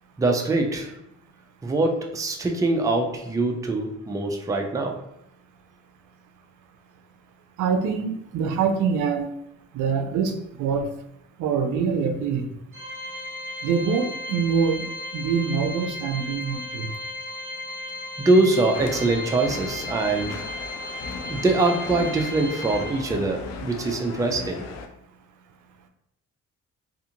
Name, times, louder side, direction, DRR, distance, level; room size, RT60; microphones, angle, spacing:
voice 1, 0.2-0.9 1.6-5.1 18.2-20.4 21.3-24.7, right 2 dB, 10° right, 2 dB, 0.4 m, -23 dB
voice 2, 7.6-9.3 9.7-10.9 11.4-12.5 13.6-14.9 15.1-16.9, right 6 dB, 80° right, 6 dB, 0.5 m, -24 dB
Organ, 12.7-23.4, left 1 dB, 45° right, 0.9 m, -35 dB
sound 1, 18.7-24.9, left 5 dB, 60° left, 0.4 m, -37 dB
2.5 x 2.4 x 2.8 m, 0.80 s
cardioid pair, 90°, 30 cm